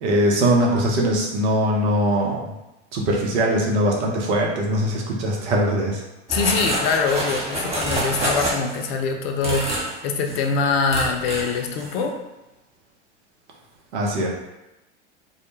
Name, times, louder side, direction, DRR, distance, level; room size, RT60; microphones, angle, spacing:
voice 1, 0.0-2.5 2.9-6.0 13.9-14.3, right 1 dB, 70° right, -1 dB, 0.7 m, -21 dB
voice 2, 6.3-12.2, left 4 dB, 60° left, 4 dB, 0.5 m, -23 dB
sound 1, 6.3-8.9 9.4-9.9 10.2-10.5 10.9-11.5 11.8-12.0, right 1 dB, 15° right, 0.7 m, -27 dB
2.2 x 2.1 x 3.1 m, 0.98 s
hypercardioid pair, 90°, 35 cm